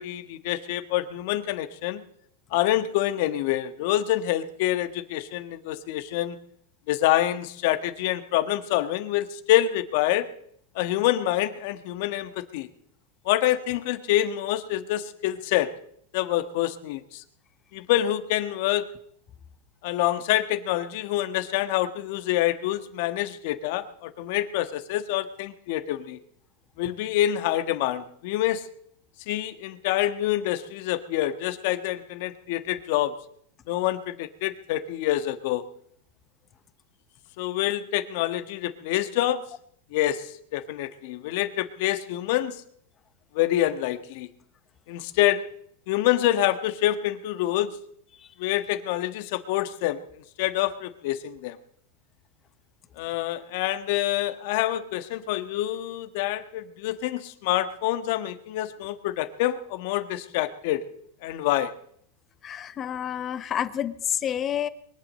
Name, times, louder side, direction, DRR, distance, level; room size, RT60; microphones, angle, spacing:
voice 1, 0.0-2.0 2.5-6.4 6.9-10.3 10.7-12.7 13.2-15.7 16.1-17.2 17.7-18.9 19.8-26.2 26.8-28.7 29.3-33.1 33.7-35.6 37.4-39.4 39.9-42.6 43.3-44.3 44.9-45.4 45.9-47.7 48.4-50.0 50.4-51.6 53.0-60.8 61.2-61.7, left 13 dB, 55° left, 10 dB, 1.4 m, -26 dB
voice 2, 62.4-64.7, left 9 dB, 25° left, 14 dB, 1.0 m, -29 dB
22.0 x 8.4 x 7.6 m, 0.66 s
supercardioid pair, 135°, 0 cm